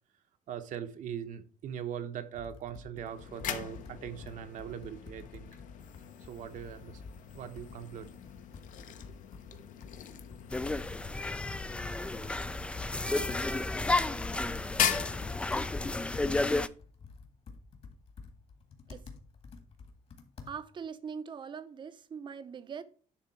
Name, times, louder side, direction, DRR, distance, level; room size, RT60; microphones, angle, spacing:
voice 1, 0.5-5.5 6.2-7.0 7.3-8.1, right 9 dB, 60° right, 1.0 m, -41 dB
Computer keyboard, 2.3-20.9, left 4 dB, 45° left, 1.7 m, -51 dB
sound 1, 3.1-16.1, left 9 dB, 65° left, 0.9 m, -40 dB
sound 2, 10.5-16.7, left 2 dB, 10° left, 0.3 m, -32 dB
voice 2, 20.4-22.8, right 6 dB, 35° right, 0.7 m, -42 dB
10.0 x 3.8 x 5.8 m
cardioid pair, 160°, 15 cm